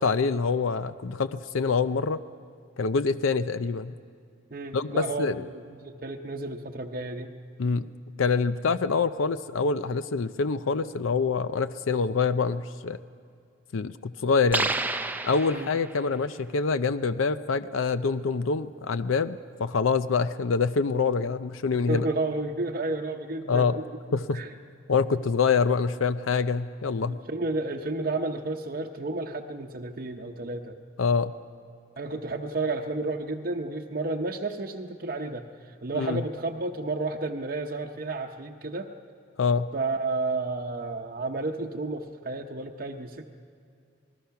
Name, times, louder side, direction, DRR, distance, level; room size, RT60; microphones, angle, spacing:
voice 1, 0.0-2.2 2.8-3.9 4.7-5.4 7.6-7.9 8.2-13.0 13.7-14.7 15.2-22.1 23.5-23.8 24.1-24.4 24.9-27.2 31.0-31.3 35.9-36.2 39.4-39.7, left 5 dB, 85° left, 13 dB, 0.5 m, -25 dB
voice 2, 4.5-7.3 15.5-15.7 21.7-23.9 24.3-24.5 27.0-30.8 32.0-38.9 39.7-43.3, right 3 dB, 45° right, 1 dB, 0.8 m, -32 dB
sound 1, 14.5-16.1, right 2 dB, 10° right, 0.5 m, -30 dB
27.5 x 19.5 x 5.8 m, 2.3 s
head